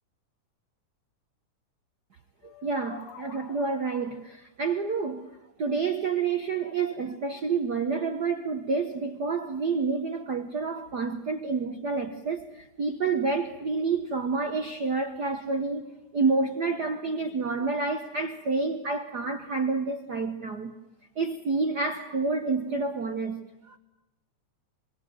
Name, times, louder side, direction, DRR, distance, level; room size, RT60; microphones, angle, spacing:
sound 1, 2.4-4.2, left 7 dB, 85° left, 3.5 m, -47 dB
voice 1, 2.4-5.3 5.6-15.9 16.1-20.7 21.2-23.8, right 4 dB, 65° right, 0.9 m, -29 dB
25.5 x 23.5 x 9.2 m
omnidirectional pair, 3.5 m